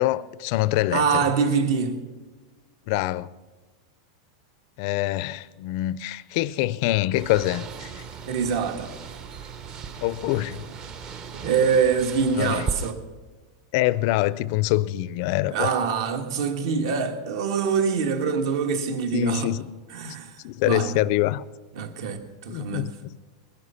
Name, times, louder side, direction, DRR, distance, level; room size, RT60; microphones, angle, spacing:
voice 1, 0.0-1.3 2.9-3.3 4.8-8.0 10.0-10.7 12.4-12.7 13.7-15.7 19.1-19.7 20.4-21.4 22.5-23.2, left 16 dB, 45° left, 0.4 m, -25 dB
voice 2, 0.9-2.1 8.3-8.9 11.3-13.0 15.5-19.5 19.9-20.4 20.6-20.9 21.7-22.9, right 6 dB, 60° right, 1.6 m, -24 dB
sound 1, 7.1-12.9, right 5 dB, 25° right, 0.8 m, -37 dB
21.0 x 11.0 x 5.7 m
supercardioid pair, 160°, 3 cm